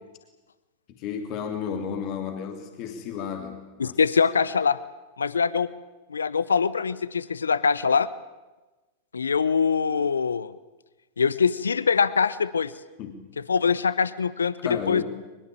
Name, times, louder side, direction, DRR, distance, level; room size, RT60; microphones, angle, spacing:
voice 1, 0.9-4.0 13.0-13.3 14.6-15.0, left 7 dB, 45° left, 4 dB, 3.1 m, -33 dB
voice 2, 3.8-4.8 5.2-5.7 6.1-8.1 9.1-10.5 11.2-12.7 13.5-15.0, left 5 dB, 80° left, 17 dB, 0.8 m, -23 dB
22.5 x 22.0 x 8.9 m, 1.1 s
figure-of-eight pair, 95°, 0 cm